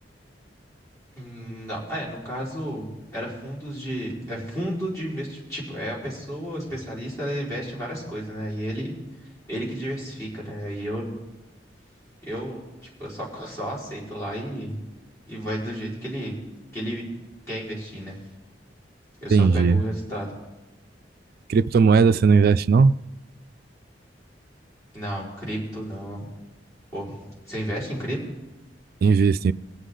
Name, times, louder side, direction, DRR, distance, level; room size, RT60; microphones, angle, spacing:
voice 1, 1.1-8.9 9.5-11.1 12.2-12.6 13.0-14.8 15.3-16.3 16.7-17.1 17.5-18.2 19.2-20.3 24.9-26.3 26.9-28.2, equal, 15° left, 4.7 m, -32 dB
voice 2, 19.3-19.8 21.5-23.0 29.0-29.5, right 5 dB, 55° right, 0.3 m, -17 dB
23.5 x 8.2 x 3.8 m
head